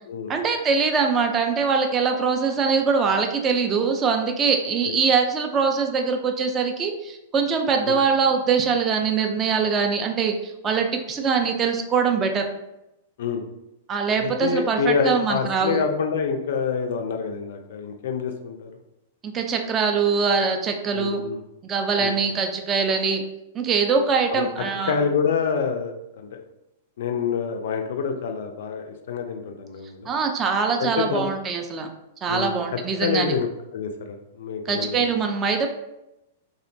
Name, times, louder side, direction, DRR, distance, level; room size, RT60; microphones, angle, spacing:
voice 1, 0.3-12.4 13.9-15.8 19.2-21.2 21.6-23.2 23.5-25.0 30.1-31.9 32.2-33.3 34.7-35.7, right 5 dB, 25° right, 4 dB, 0.3 m, -23 dB
voice 2, 14.2-18.7 20.9-21.4 22.0-22.1 24.3-24.4 24.9-26.3 27.0-30.1 30.8-31.3 32.3-33.5 33.7-35.0, left 6 dB, 60° left, 5 dB, 0.3 m, -27 dB
2.6 x 2.1 x 2.5 m, 0.89 s
figure-of-eight pair, 100°, 0 cm